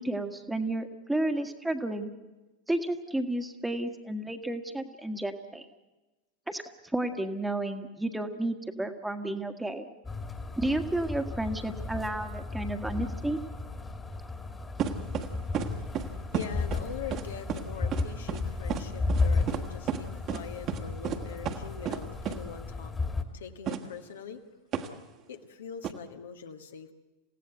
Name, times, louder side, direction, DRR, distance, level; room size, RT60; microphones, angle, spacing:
voice 1, 0.0-2.1 2.7-5.6 6.5-9.9 10.6-13.4, right 1 dB, 5° right, 7 dB, 1.6 m, -32 dB
sound 1, 10.0-23.2, left 3 dB, 15° left, 2.0 m, -34 dB
sound 2, 14.8-15.3 15.5-15.7 15.9-16.1 16.3-16.8 17.1-17.2 17.5-17.6 17.9-18.0 18.3-18.4 18.7-18.8 19.1-19.2 19.5-19.6 19.9-20.0 20.3-20.4 20.7-20.8 21.0-21.2 21.4-21.6 21.8-22.0 22.2-22.4 23.7-23.8 24.7-24.9 25.8-25.9, right 9 dB, 35° right, 1.7 m, -31 dB
voice 2, 15.2-24.4 25.3-26.9, left 7 dB, 65° left, 6 dB, 1.5 m, -43 dB
28.5 x 16.5 x 8.0 m, 1.1 s
figure-of-eight pair, 90°, 0 cm